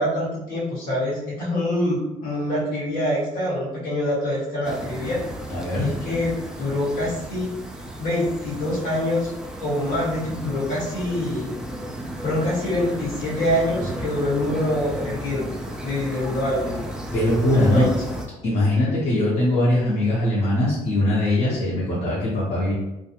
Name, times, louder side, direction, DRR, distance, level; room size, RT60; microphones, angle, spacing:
voice 1, 0.0-5.2 5.8-6.3 6.6-7.5 8.0-9.3 9.6-11.5 12.2-15.5 15.8-16.8 17.5-17.9, left 1 dB, 70° left, -6 dB, 1.3 m, -25 dB
sound 1, 4.6-18.3, right 1 dB, 5° right, 0.3 m, -34 dB
voice 2, 5.5-5.9 17.1-17.9 18.4-22.7, left 1 dB, 50° left, -8 dB, 0.8 m, -21 dB
2.4 x 2.3 x 2.8 m, 0.96 s
cardioid pair, 120°, 14 cm